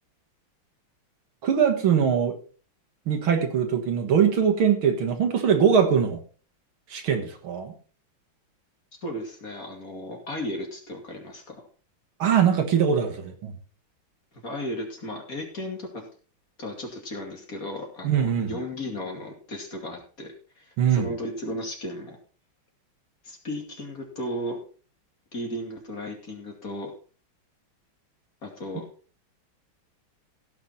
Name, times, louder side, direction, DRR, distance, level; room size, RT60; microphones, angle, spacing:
voice 1, 1.4-2.3 3.1-6.2 6.9-7.7 12.2-13.5 18.0-18.5 20.8-21.1, right 7 dB, 80° right, 5 dB, 2.5 m, -22 dB
voice 2, 9.0-11.6 14.4-16.0 16.6-22.2 23.2-24.6 25.3-26.9 28.4-28.8, left 1 dB, 40° left, 1 dB, 2.9 m, -35 dB
16.5 x 6.5 x 4.3 m, 0.39 s
omnidirectional pair, 2.3 m